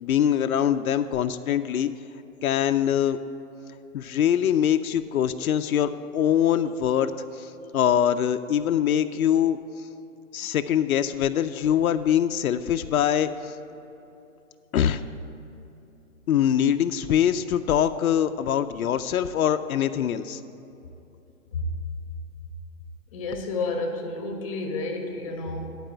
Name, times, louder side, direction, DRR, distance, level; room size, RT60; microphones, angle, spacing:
voice 1, 0.0-1.9 2.4-3.2 3.9-7.1 7.4-9.6 10.3-13.5 14.7-15.0 16.3-20.4, left 9 dB, 85° left, 9 dB, 0.5 m, -23 dB
voice 2, 23.1-25.8, left 3 dB, 25° left, 3 dB, 0.8 m, -30 dB
10.5 x 4.8 x 7.5 m, 2.9 s
hypercardioid pair, 165°, 42 cm